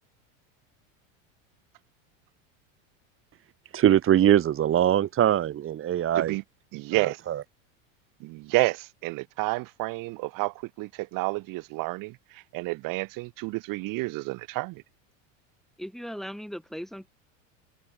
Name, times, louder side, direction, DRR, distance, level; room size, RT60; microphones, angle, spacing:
voice 1, 3.7-6.4 7.0-7.4, right 11 dB, 35° right, 1.8 m, -22 dB
voice 2, 6.7-7.2 8.2-14.8, right 23 dB, 60° right, 5.6 m, -30 dB
voice 3, 15.8-17.1, equal, ahead, 5.3 m, -38 dB
supercardioid pair, 110°, 38 cm